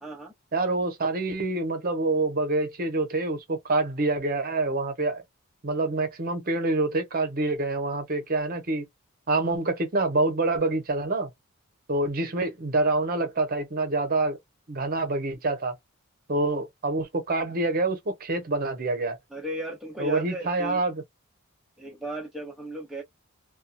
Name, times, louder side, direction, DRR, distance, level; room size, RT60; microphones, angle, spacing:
voice 1, 0.0-0.3 19.3-20.8 21.8-23.0, right 1 dB, ahead, 0.5 m, -36 dB
voice 2, 0.5-5.2 5.6-8.8 9.3-11.3 11.9-14.4 14.7-15.7 16.3-19.2 20.0-21.0, right 2 dB, 40° right, 0.7 m, -26 dB
2.7 x 2.2 x 2.2 m
head